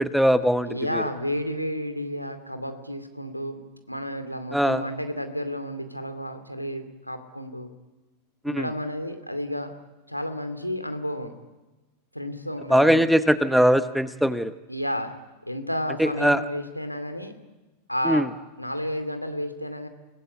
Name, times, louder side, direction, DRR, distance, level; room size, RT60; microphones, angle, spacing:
voice 1, 0.0-1.0 4.5-4.8 8.4-8.7 12.7-14.5 16.0-16.4 18.0-18.3, equal, ahead, 13 dB, 1.1 m, -21 dB
voice 2, 0.7-3.6 3.9-7.7 8.4-9.7 10.1-11.3 12.1-13.0 14.7-15.1 15.5-17.3 17.9-18.3 18.6-19.9, equal, 90° left, 8 dB, 2.5 m, -31 dB
30.0 x 19.0 x 8.3 m, 1.1 s
figure-of-eight pair, 90°, 0 cm